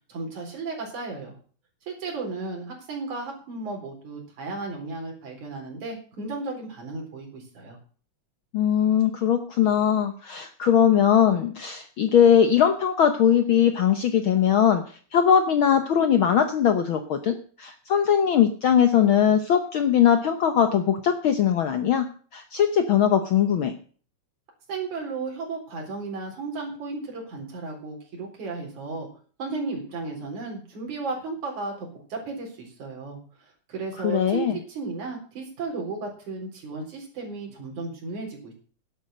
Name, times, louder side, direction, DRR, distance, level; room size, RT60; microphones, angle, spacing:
voice 1, 0.1-1.4 1.9-7.8 24.7-29.1 29.4-38.5, right 3 dB, 80° right, 0 dB, 5.3 m, -34 dB
voice 2, 8.5-22.1 22.3-23.8 34.0-34.6, left 8 dB, 65° left, 8 dB, 1.3 m, -20 dB
11.5 x 8.2 x 7.7 m, 0.43 s
omnidirectional pair, 3.3 m